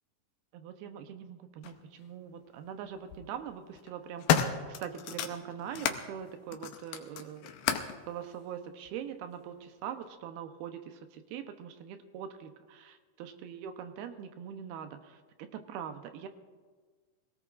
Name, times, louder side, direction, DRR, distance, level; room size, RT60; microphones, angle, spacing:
voice 1, 0.5-7.6 8.1-16.3, right 8 dB, 80° right, 8 dB, 2.7 m, -42 dB
sound 1, 1.6-1.8 2.8-3.2 3.7-6.0 6.5-8.0 8.9-9.0, left 9 dB, 80° left, 2.6 m, -32 dB
23.5 x 17.5 x 2.5 m, 1.5 s
omnidirectional pair, 4.5 m